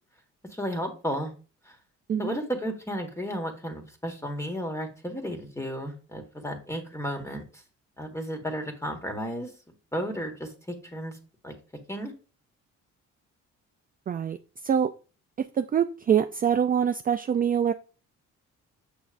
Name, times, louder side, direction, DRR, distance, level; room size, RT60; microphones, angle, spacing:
voice 1, 0.5-1.3 1.6-1.8 2.2-7.6 8.0-9.5 9.9-11.2 11.4-11.5 11.9-12.1, equal, 10° left, 1.7 m, -33 dB
voice 2, 2.1-2.4 14.1-14.4 14.6-14.9 15.4-17.7, right 8 dB, 30° right, 0.4 m, -24 dB
7.1 x 6.2 x 2.6 m
cardioid pair, 90°, 30 cm